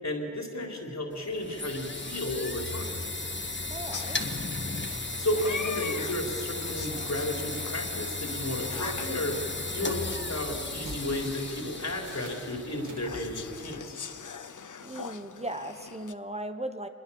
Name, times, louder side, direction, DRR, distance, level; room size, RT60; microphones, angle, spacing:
voice 1, 0.0-3.0 5.2-9.4 9.7-14.0, left 1 dB, 60° left, 1 dB, 3.9 m, -33 dB
sound 1, 1.1-13.9, left 2 dB, 40° left, 1.6 m, -36 dB
voice 2, 3.7-4.3 14.8-16.9, right 1 dB, 20° right, 8 dB, 1.1 m, -37 dB
sound 2, 3.9-16.1, left 6 dB, 80° left, 0.8 m, -43 dB
sound 3, 4.9-5.8 6.0-6.3 6.6-7.1 7.6-8.0 8.4-9.1 10.7-11.1 12.1-12.4 12.9-13.2, right 3 dB, 80° right, 1.7 m, -48 dB
26.0 x 21.5 x 7.1 m, 2.4 s
wide cardioid pair, 65°, 31 cm